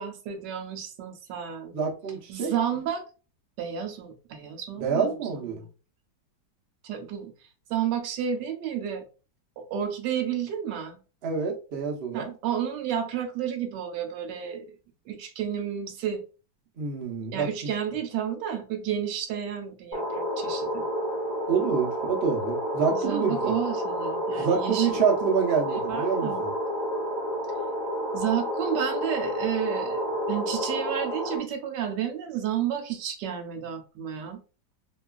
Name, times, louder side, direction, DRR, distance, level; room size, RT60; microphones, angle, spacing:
voice 1, 0.0-1.7 2.3-3.0 3.6-5.1 5.5-5.7 6.8-7.3 7.7-9.0 9.6-11.0 12.1-14.7 15.1-16.2 17.3-20.9 22.9-25.0 25.7-26.4 28.1-34.4, right 9 dB, 80° right, 1.2 m, -31 dB
voice 2, 1.7-2.5 4.8-5.6 11.2-12.3 16.8-17.7 21.5-23.5 24.4-26.5, right 6 dB, 60° right, 0.6 m, -27 dB
sound 1, 19.9-31.4, equal, 35° left, 0.6 m, -30 dB
2.9 x 2.3 x 2.3 m
omnidirectional pair, 2.0 m